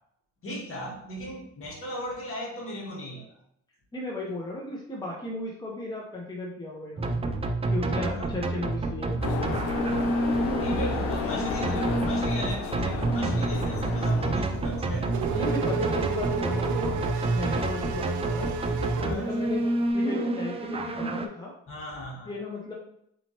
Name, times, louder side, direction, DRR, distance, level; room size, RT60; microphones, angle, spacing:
voice 1, 0.4-3.4 8.0-8.3 10.6-15.5 19.0-19.3 21.7-22.3, equal, 45° left, -2 dB, 1.5 m, -37 dB
voice 2, 3.9-7.2 7.7-9.4 15.3-17.0 17.3-18.5 19.0-19.6 19.9-21.5 22.2-22.7, left 2 dB, 15° left, -3 dB, 0.8 m, -35 dB
sound 1, 7.0-21.3, right 2 dB, 20° right, 0.4 m, -28 dB
sound 2, 9.2-14.4, left 6 dB, 80° left, 0.5 m, -32 dB
Race car auto racing / Accelerating revving vroom, 14.5-19.8, right 5 dB, 70° right, 0.6 m, -32 dB
4.1 x 3.0 x 2.9 m, 0.72 s
cardioid pair, 90°, 30 cm